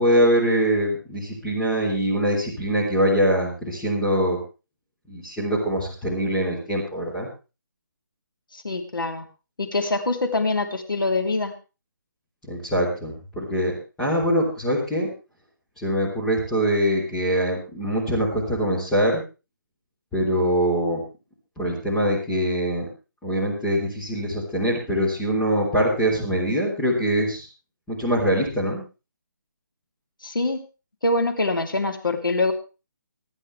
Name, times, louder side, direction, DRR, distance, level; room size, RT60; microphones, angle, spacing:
voice 1, 0.0-4.4 5.1-7.3 12.5-15.1 15.8-19.2 20.1-21.0 21.6-22.9 23.2-27.5 27.9-28.8, equal, 5° left, -6 dB, 3.7 m, -23 dB
voice 2, 8.5-9.2 9.6-11.5 30.2-30.6 31.0-32.5, left 2 dB, 80° left, 4 dB, 2.9 m, -24 dB
25.0 x 9.3 x 3.4 m, 0.31 s
figure-of-eight pair, 155°, 11 cm